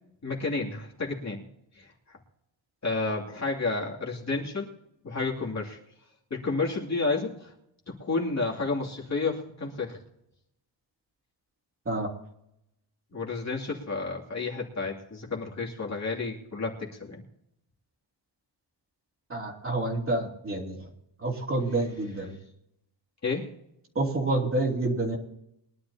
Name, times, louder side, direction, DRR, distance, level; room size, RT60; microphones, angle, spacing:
voice 1, 0.2-1.4 1.7-1.9 2.8-4.7 5.0-5.8 6.3-7.5 8.0-10.0 13.1-17.2 23.2-23.5, left 3 dB, 35° left, -3 dB, 2.8 m, -31 dB
voice 2, 19.3-20.9 21.2-22.4 23.9-25.2, right 2 dB, 30° right, -3 dB, 3.0 m, -28 dB
22.5 x 11.5 x 2.8 m, 0.80 s
wide cardioid pair, 140°, 46 cm